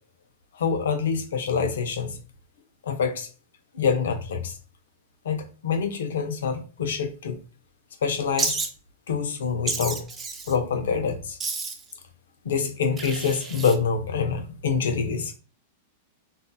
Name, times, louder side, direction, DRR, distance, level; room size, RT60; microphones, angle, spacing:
voice 1, 0.5-2.2 2.8-3.3 3.7-4.6 5.2-7.4 8.0-8.6 9.1-10.1 10.5-11.4 12.4-15.3, left 6 dB, 80° left, 0.5 m, -26 dB
Wild animals, 8.4-8.7 9.7-10.5 11.4-11.9 13.0-13.8, right 4 dB, 25° right, 0.5 m, -30 dB
3.4 x 2.3 x 2.6 m
hypercardioid pair, 115°, 0 cm